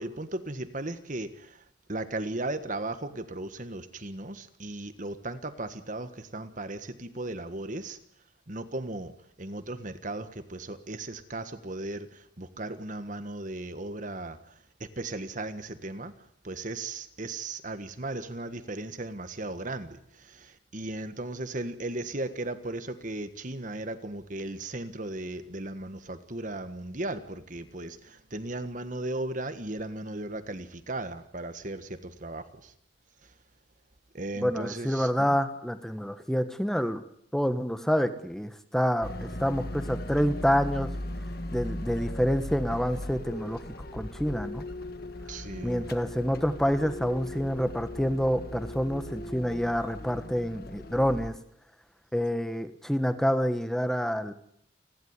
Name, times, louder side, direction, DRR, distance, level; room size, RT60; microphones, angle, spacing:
voice 1, 0.0-1.6 1.9-8.0 8.5-9.1 9.4-14.4 14.8-16.1 16.4-32.7 34.1-35.4 45.3-45.9, right 2 dB, 40° right, 10 dB, 1.5 m, -36 dB
voice 2, 34.4-37.0 37.3-40.9 41.5-43.6 43.9-44.6 45.6-51.3 52.1-54.3, equal, ahead, 9 dB, 1.3 m, -27 dB
sound 1, 39.0-51.3, left 1 dB, 50° left, 1.6 m, -38 dB
29.5 x 12.0 x 9.7 m, 0.72 s
head